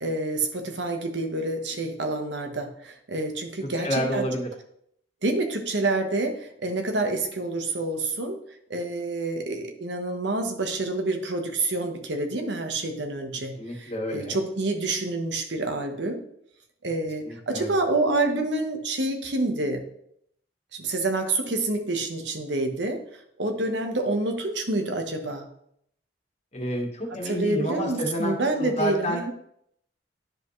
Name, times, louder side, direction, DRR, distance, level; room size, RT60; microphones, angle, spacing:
voice 1, 0.0-4.3 5.2-8.4 8.7-16.2 16.8-19.8 20.7-23.0 23.4-25.5 27.1-29.3, right 2 dB, 80° right, 5 dB, 1.2 m, -28 dB
voice 2, 3.8-4.5 13.6-14.4 17.2-17.7 26.5-29.2, equal, 40° left, 1 dB, 1.4 m, -29 dB
10.5 x 5.0 x 3.2 m, 0.71 s
head